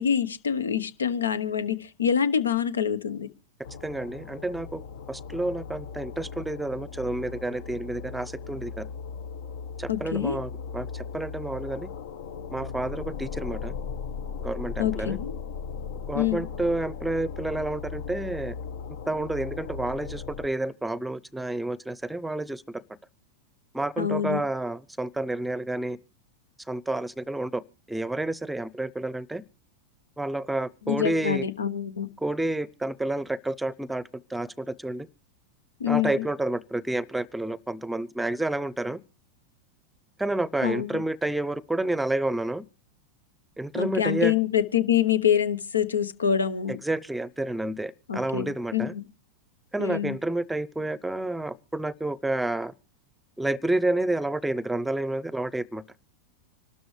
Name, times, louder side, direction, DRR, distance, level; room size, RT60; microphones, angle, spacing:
voice 1, 0.0-3.3 9.9-10.4 14.8-15.3 16.1-16.5 24.0-24.4 30.8-32.1 35.8-36.3 40.6-41.0 43.7-46.8 48.1-49.1 49.8-50.2, left 9 dB, 85° left, 1.1 m, -26 dB
sound 1, 3.6-20.5, left 6 dB, 70° left, 1.2 m, -37 dB
voice 2, 3.8-4.8 5.1-8.9 9.8-11.9 12.5-13.7 14.4-15.2 16.1-18.5 19.1-22.6 23.7-26.0 26.7-27.6 27.9-29.4 30.2-31.4 32.2-34.0 34.3-35.1 35.9-39.0 40.2-42.6 43.6-44.3 46.8-48.9 49.7-52.7 53.4-55.8, right 2 dB, 5° right, 0.7 m, -29 dB
25.5 x 12.5 x 3.3 m
hypercardioid pair, 95°, 0 cm